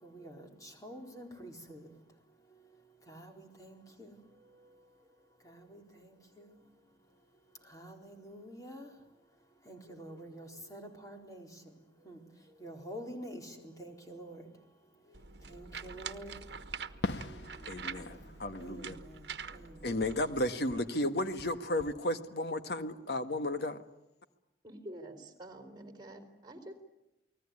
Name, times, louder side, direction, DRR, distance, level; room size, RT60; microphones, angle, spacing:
voice 1, 0.0-1.9 3.1-4.1 5.4-6.1 6.4-6.5 7.7-8.9 9.7-11.5 12.1-12.2 12.6-14.4 15.5-16.3 18.6-19.2 19.5-20.0, equal, 20° left, 2 dB, 4.3 m, -47 dB
sound 1, 15.1-20.5, right 6 dB, 75° right, 1.3 m, -45 dB
Fireworks, 17.0-19.7 20.0-21.9, left 2 dB, 85° left, 1.3 m, -43 dB
voice 2, 17.7-19.0 19.8-23.8, left 1 dB, 65° left, 9 dB, 1.6 m, -33 dB
voice 3, 24.6-26.7, right 1 dB, 25° right, 6 dB, 4.1 m, -47 dB
29.0 x 20.0 x 9.8 m, 0.92 s
head